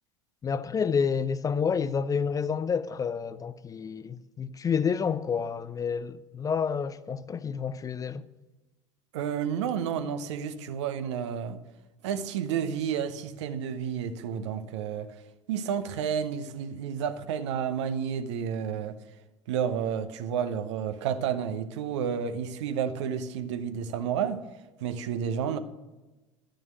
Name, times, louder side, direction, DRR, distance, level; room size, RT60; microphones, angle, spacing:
voice 1, 0.4-8.3, left 6 dB, 20° left, 0.4 m, -29 dB
voice 2, 9.1-11.6 12.0-15.1 15.5-19.0 19.5-24.4 24.8-25.6, right 8 dB, 65° right, 0.8 m, -31 dB
12.0 x 6.4 x 7.8 m
figure-of-eight pair, 70°, 16 cm